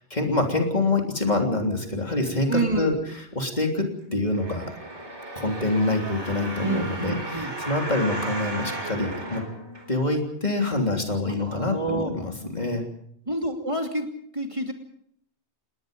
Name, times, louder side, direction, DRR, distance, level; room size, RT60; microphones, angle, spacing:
voice 1, 0.1-3.0 3.3-4.7 5.3-9.4 9.9-12.8, left 2 dB, 40° left, 2 dB, 3.5 m, -26 dB
voice 2, 2.5-3.0 6.6-7.5 11.2-12.1 13.3-14.1 14.3-14.7, right 2 dB, 25° right, 3 dB, 2.9 m, -28 dB
sound 1, 4.3-10.3 10.9-11.0, right 1 dB, 85° right, 4.9 m, -35 dB
29.0 x 19.5 x 5.4 m, 0.67 s
omnidirectional pair, 1.2 m